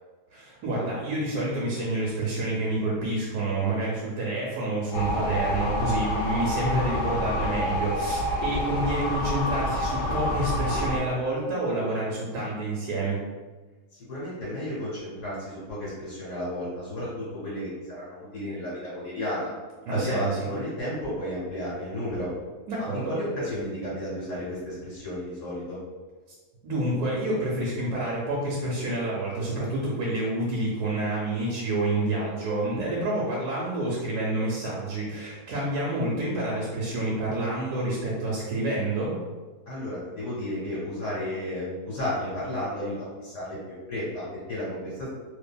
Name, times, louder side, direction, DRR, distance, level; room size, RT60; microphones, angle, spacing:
voice 1, 0.3-13.2 19.9-20.4 22.7-23.1 26.6-39.2, right 2 dB, 75° right, -5 dB, 1.1 m, -28 dB
sound 1, 4.9-11.0, left 1 dB, 90° left, 1.2 m, -28 dB
voice 2, 13.9-19.5 19.9-22.3 22.9-25.8 39.7-45.1, left 1 dB, 70° left, -10 dB, 1.6 m, -33 dB
2.6 x 2.6 x 2.2 m, 1.3 s
omnidirectional pair, 1.7 m